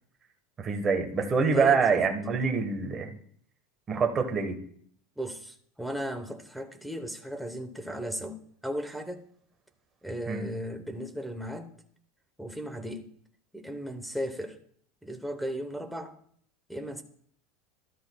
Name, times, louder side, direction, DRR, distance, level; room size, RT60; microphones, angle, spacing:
voice 1, 0.6-3.1 3.9-4.6 10.3-10.4, right 5 dB, 20° right, 4 dB, 1.3 m, -25 dB
voice 2, 1.5-2.0 5.2-9.2 10.0-11.8 12.4-13.0 13.5-14.6 15.0-16.1 16.7-17.0, equal, ahead, 5 dB, 0.9 m, -36 dB
13.0 x 12.5 x 2.3 m, 0.62 s
supercardioid pair, 155°, 0 cm